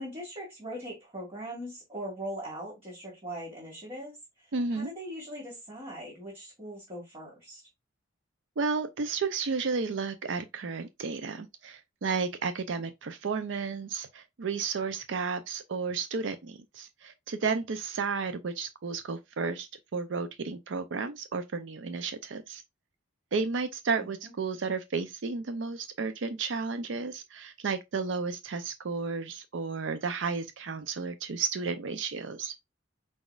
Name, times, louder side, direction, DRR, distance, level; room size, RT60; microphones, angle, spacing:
voice 1, 0.0-7.6 24.0-24.3, equal, 30° right, 2.0 m, -41 dB
voice 2, 4.5-4.9 8.6-22.6 23.3-32.5, right 4 dB, 65° right, 0.5 m, -32 dB
4.9 x 3.9 x 2.3 m
head